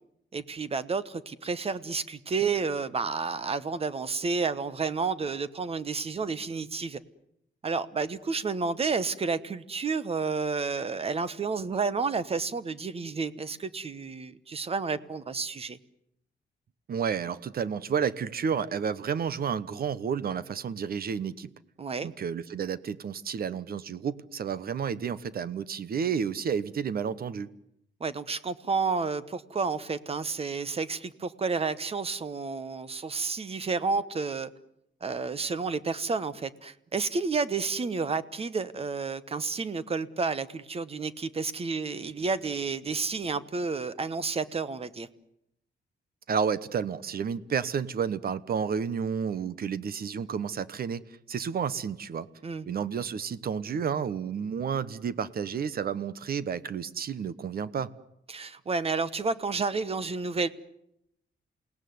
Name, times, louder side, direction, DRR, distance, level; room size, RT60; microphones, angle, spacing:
voice 1, 0.3-7.0 7.6-15.8 21.8-22.1 28.0-34.5 35.0-45.1 52.4-52.7 58.3-60.5, right 4 dB, 30° right, 16 dB, 1.1 m, -30 dB
voice 2, 16.9-21.5 22.0-27.5 46.3-52.3 52.7-57.9, right 7 dB, 50° right, 17 dB, 1.1 m, -31 dB
28.5 x 18.5 x 9.5 m, 0.79 s
wide cardioid pair, 165°, 19 cm